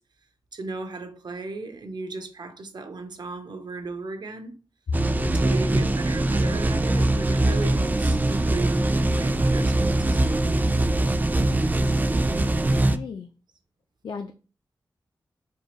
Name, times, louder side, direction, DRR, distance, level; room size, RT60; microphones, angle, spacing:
voice 1, 0.5-4.6 5.2-10.6, right 3 dB, 65° right, 0.7 m, -36 dB
sound 1, 4.9-13.0, right 1 dB, 25° right, 0.4 m, -22 dB
voice 2, 5.0-5.4 12.7-13.3 14.0-14.3, left 5 dB, 65° left, 0.4 m, -36 dB
4.5 x 2.4 x 3.0 m
cardioid pair, 60°, 8 cm